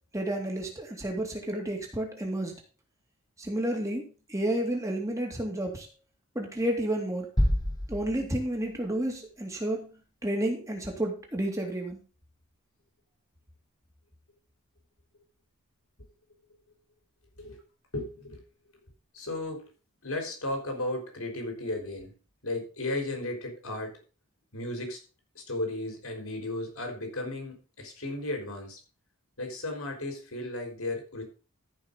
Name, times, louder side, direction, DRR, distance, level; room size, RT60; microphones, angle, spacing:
voice 1, 0.1-2.5 3.4-5.9 6.3-7.3 7.9-9.9 10.2-12.0, right 1 dB, 15° right, 2 dB, 2.5 m, -31 dB
sound 1, 7.4-9.2, equal, 15° left, 1.7 m, -29 dB
voice 2, 17.9-18.4 19.1-19.7 20.0-22.1 22.4-24.0 24.5-25.0 25.3-28.8 29.4-31.2, left 2 dB, 75° left, 3 dB, 4.0 m, -35 dB
14.0 x 5.8 x 5.3 m, 0.36 s
head